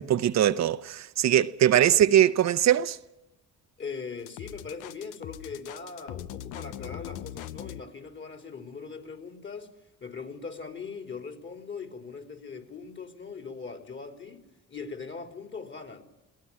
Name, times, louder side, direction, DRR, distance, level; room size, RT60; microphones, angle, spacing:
voice 1, 0.0-3.0, right 11 dB, 65° right, 0.8 m, -21 dB
voice 2, 3.8-9.7 10.0-14.4 14.7-16.0, left 5 dB, 40° left, 3.6 m, -40 dB
sound 1, 4.3-7.8, left 11 dB, 90° left, 0.8 m, -40 dB
22.0 x 17.5 x 8.5 m
cardioid pair, 90°, 30 cm